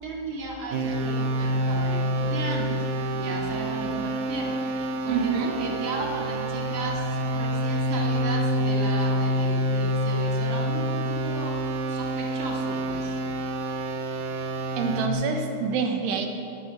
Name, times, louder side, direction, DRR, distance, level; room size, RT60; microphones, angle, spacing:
voice 1, 0.0-2.9 3.2-13.2, right 3 dB, 45° right, -1 dB, 1.6 m, -35 dB
sound 1, 0.7-15.1, right 1 dB, 70° right, 1.9 m, -27 dB
sound 2, 1.0-12.6, left 8 dB, 90° left, 3.0 m, -42 dB
voice 2, 5.1-5.5 14.8-16.3, right 5 dB, 90° right, 4 dB, 3.8 m, -26 dB
20.5 x 10.0 x 6.4 m, 2.8 s
omnidirectional pair, 5.4 m